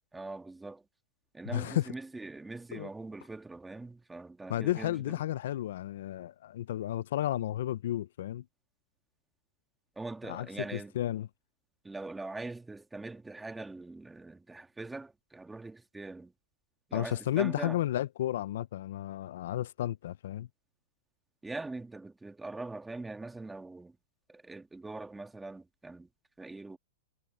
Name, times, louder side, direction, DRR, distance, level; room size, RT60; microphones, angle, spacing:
voice 1, 0.1-0.8 1.3-5.2 10.0-10.9 11.8-16.3 16.9-17.8 21.4-24.0 24.3-26.1 26.4-26.8, right 2 dB, 5° right, 1.7 m, -42 dB
voice 2, 1.5-1.9 2.7-2.9 4.5-8.4 10.3-10.5 10.7-11.3 16.9-20.5, left 13 dB, 70° left, 0.5 m, -32 dB
hypercardioid pair, 145°, 0 cm